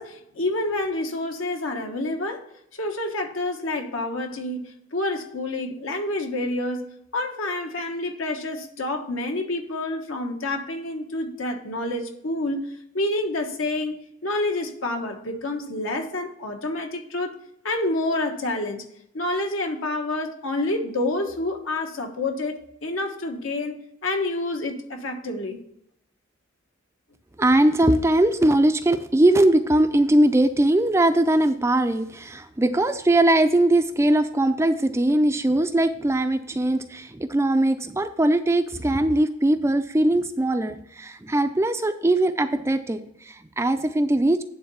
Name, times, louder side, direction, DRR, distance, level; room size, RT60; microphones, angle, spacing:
voice 1, 0.0-2.4 2.7-6.9 7.1-12.7 12.9-17.4 17.6-18.8 19.1-25.6, left 2 dB, 75° left, 3 dB, 1.3 m, -28 dB
voice 2, 27.4-44.4, right 1 dB, 15° right, 9 dB, 0.3 m, -20 dB
9.4 x 3.9 x 7.0 m, 0.77 s
head